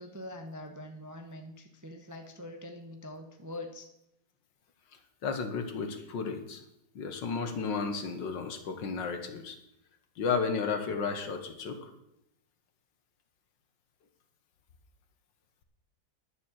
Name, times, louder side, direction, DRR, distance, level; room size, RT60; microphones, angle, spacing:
voice 1, 0.0-3.8, left 1 dB, 15° right, 4 dB, 0.6 m, -44 dB
voice 2, 5.2-6.6 7.0-9.6 10.2-11.9, left 5 dB, 70° left, 7 dB, 1.9 m, -33 dB
10.5 x 7.1 x 7.3 m, 0.82 s
omnidirectional pair, 2.1 m